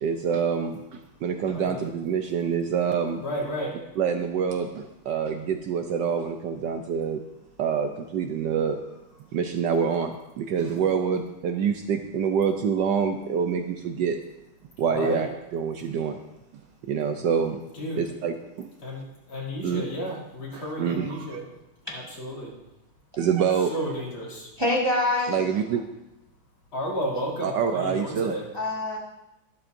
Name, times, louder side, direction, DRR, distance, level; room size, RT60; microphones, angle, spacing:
voice 1, 0.0-3.2 4.0-7.2 7.6-8.8 9.3-14.2 14.8-15.3 15.5-16.2 16.8-17.6 18.0-18.7 19.6-19.8 20.5-21.4 23.2-23.7 25.3-25.8 27.4-28.4, right 7 dB, 70° right, 6 dB, 1.1 m, -26 dB
voice 2, 1.5-1.8 3.2-3.7 14.9-15.2 17.8-18.0 18.8-19.0 19.3-21.4 21.9-22.5 23.7-24.5 26.7-28.4, equal, 75° left, -5 dB, 3.7 m, -32 dB
voice 3, 24.6-25.3 28.5-29.0, left 2 dB, 15° right, -4 dB, 1.5 m, -24 dB
13.0 x 12.0 x 2.6 m, 0.92 s
omnidirectional pair, 2.3 m